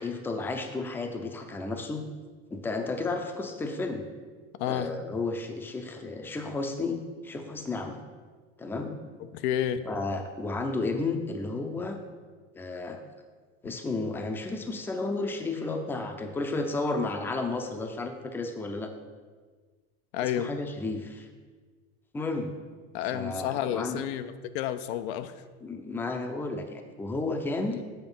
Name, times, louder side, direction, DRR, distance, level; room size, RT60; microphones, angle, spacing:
voice 1, 0.0-2.0 2.5-4.0 4.7-8.0 8.6-8.9 9.8-12.0 12.5-13.0 13.6-18.9 20.2-21.3 22.1-22.5 23.1-24.0 25.6-27.8, left 3 dB, 5° left, 5 dB, 0.5 m, -32 dB
voice 2, 4.6-4.9 9.3-9.9 20.1-20.5 22.9-25.3 27.7-27.8, left 10 dB, 80° left, 11 dB, 0.6 m, -30 dB
8.0 x 4.4 x 5.4 m, 1.4 s
supercardioid pair, 145°, 32 cm